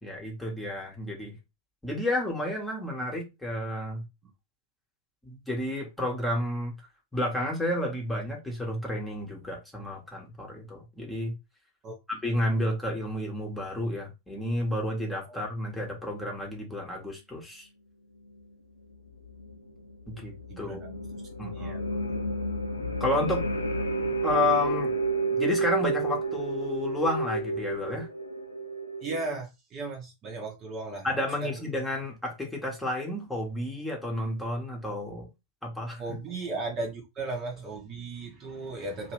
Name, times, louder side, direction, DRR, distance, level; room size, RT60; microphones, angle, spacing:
voice 1, 0.0-1.4 1.8-4.0 5.2-6.8 7.1-11.3 12.1-17.7 20.1-20.8 21.4-22.1 23.0-23.5 24.2-24.9 25.3-28.1 31.0-35.3 35.6-36.0, left 1 dB, 5° left, 1.3 m, -31 dB
sound 1, 18.9-29.3, right 2 dB, 80° left, 0.4 m, -31 dB
voice 2, 20.5-21.0 21.4-21.8 29.0-31.1 31.4-31.6 36.0-39.1, right 3 dB, 30° right, 1.1 m, -36 dB
2.9 x 2.8 x 3.1 m
figure-of-eight pair, 90°, 0 cm